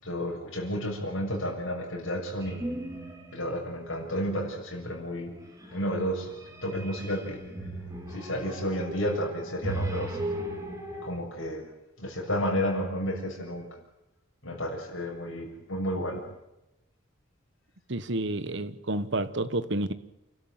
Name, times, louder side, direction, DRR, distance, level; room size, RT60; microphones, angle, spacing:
voice 1, 0.0-2.7 3.3-5.4 5.7-6.3 6.6-7.4 8.1-10.2 11.0-11.7 12.0-13.7 14.4-16.2, equal, 65° left, 6.8 m, -31 dB
sound 1, 2.4-3.4 3.8-4.3 5.1-11.1, right 1 dB, 15° right, 3.0 m, -37 dB
voice 2, 17.9-19.9, right 2 dB, 55° right, 1.2 m, -30 dB
28.5 x 13.0 x 9.2 m
head